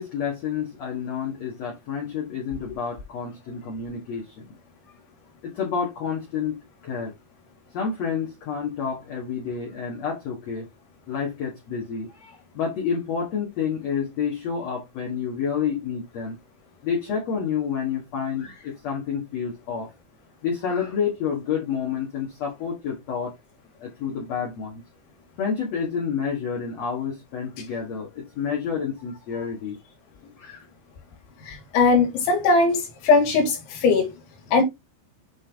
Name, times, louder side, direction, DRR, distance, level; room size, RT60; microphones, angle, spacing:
voice 1, 0.0-4.3 5.4-7.1 7.7-10.7 11.1-16.4 16.8-19.9 20.4-23.3 23.8-24.8 25.4-29.8 30.2-30.6, left 6 dB, 60° left, 1.7 m, -29 dB
voice 2, 31.5-34.1 34.5-34.6, left 3 dB, 80° left, 4.4 m, -20 dB
8.5 x 3.4 x 3.4 m
omnidirectional pair, 5.3 m